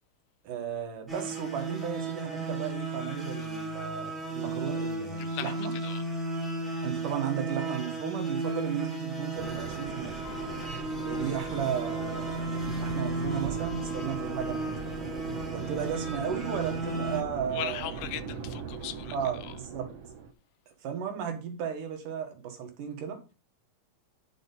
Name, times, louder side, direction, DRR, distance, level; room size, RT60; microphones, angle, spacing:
voice 1, 0.4-5.7 6.8-10.2 11.0-14.7 15.5-18.0 19.1-19.9 20.8-23.2, right 8 dB, 85° right, 3.2 m, -34 dB
sound 1, 1.1-17.2, right 2 dB, ahead, 2.8 m, -34 dB
voice 2, 5.2-5.5 5.8-6.0 10.6-10.8 17.5-19.2 19.4-19.5, left 12 dB, 80° left, 2.2 m, -38 dB
sound 2, 9.4-20.3, right 6 dB, 60° right, 1.8 m, -39 dB
Wind instrument woodwind instrument, 10.2-14.4, left 5 dB, 55° left, 0.9 m, -49 dB
9.5 x 6.2 x 4.1 m
omnidirectional pair, 3.6 m